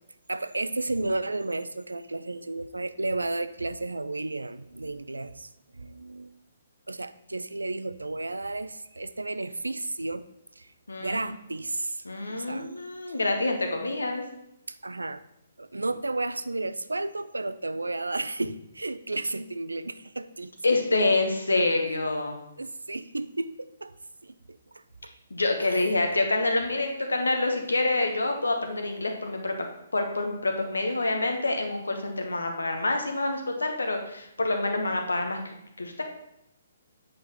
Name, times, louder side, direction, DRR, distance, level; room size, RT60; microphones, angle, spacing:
voice 1, 0.3-6.3 6.9-10.3 10.6-10.7 11.0-12.7 14.7-15.2 15.6-20.5 22.6-23.9 24.2-25.1 25.6-26.0, right 2 dB, 80° right, 13 dB, 0.4 m, -33 dB
voice 2, 10.9-11.3 12.0-14.2 20.6-22.4 25.3-29.7 29.9-36.0, left 2 dB, 75° left, 4 dB, 1.0 m, -27 dB
8.4 x 5.1 x 3.0 m, 0.84 s
figure-of-eight pair, 130°, 0 cm